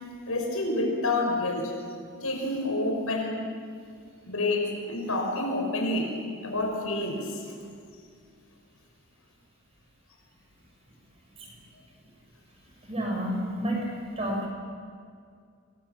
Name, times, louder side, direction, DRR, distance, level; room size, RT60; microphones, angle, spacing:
voice 1, 0.3-1.7 2.2-3.5 4.3-6.1 6.4-7.5, left 2 dB, 80° left, 2 dB, 5.9 m, -28 dB
voice 2, 12.8-13.9 14.2-14.5, equal, 25° right, -1 dB, 7.1 m, -30 dB
27.5 x 22.5 x 7.5 m, 2.2 s
head